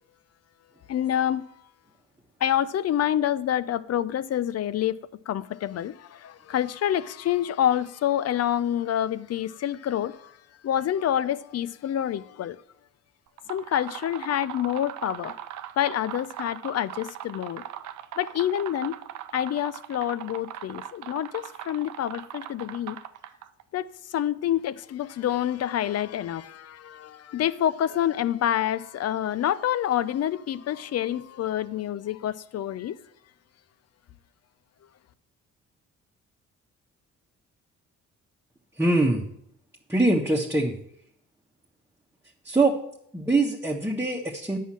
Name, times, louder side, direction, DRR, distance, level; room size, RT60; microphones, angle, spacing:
voice 1, 0.9-1.4 2.4-5.0 5.3-10.3 10.6-12.6 13.5-15.3 15.8-17.6 18.2-18.9 19.3-23.0 23.7-32.9, left 11 dB, 55° left, 0.6 m, -27 dB
sound 1, 13.3-23.6, right 11 dB, 75° right, 0.7 m, -40 dB
voice 2, 38.8-39.2 39.9-40.7 42.4-42.8 43.1-44.6, right 2 dB, 10° right, 1.3 m, -23 dB
9.3 x 5.6 x 7.5 m
cardioid pair, 90°, 30 cm